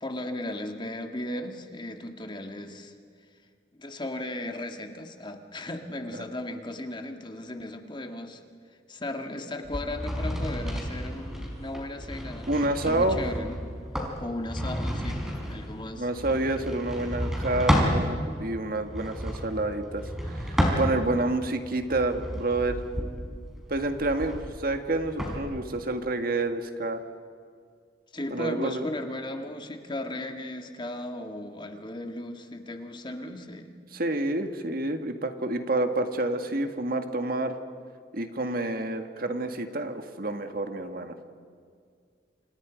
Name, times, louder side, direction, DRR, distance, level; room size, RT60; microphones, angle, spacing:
voice 1, 0.0-2.9 3.8-8.4 8.9-13.6 14.2-15.2 15.5-16.1 17.7-17.9 28.1-33.7, left 1 dB, 25° left, 5 dB, 1.8 m, -36 dB
sound 1, 9.6-18.0 18.8-21.3 21.8-25.4, equal, 5° right, 4.8 m, -31 dB
voice 2, 12.5-13.2 16.0-22.8 23.7-27.0 28.3-28.9 33.9-37.6 38.1-41.1, right 2 dB, 55° right, 7 dB, 1.7 m, -28 dB
29.0 x 27.5 x 5.1 m, 2.1 s
head